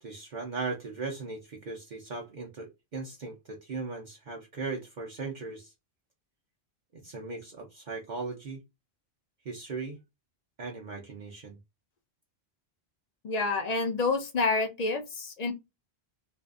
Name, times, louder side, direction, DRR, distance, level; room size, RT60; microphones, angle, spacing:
voice 1, 0.0-5.7 6.9-8.6 9.4-10.0 10.6-11.6, right 4 dB, 50° right, 0.7 m, -38 dB
voice 2, 13.2-15.5, left 3 dB, 50° left, 0.5 m, -28 dB
2.5 x 2.4 x 2.4 m
omnidirectional pair, 1.1 m